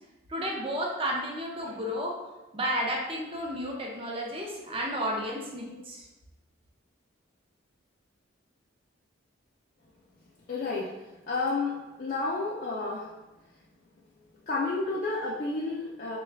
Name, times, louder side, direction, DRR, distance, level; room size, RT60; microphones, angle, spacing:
voice 1, 0.3-2.2 2.5-6.0, equal, 25° right, -1 dB, 0.5 m, -32 dB
voice 2, 10.5-10.9 11.3-11.7 12.0-13.1 14.5-16.2, left 3 dB, 45° left, -6 dB, 0.4 m, -30 dB
3.8 x 2.3 x 3.3 m, 1.1 s
head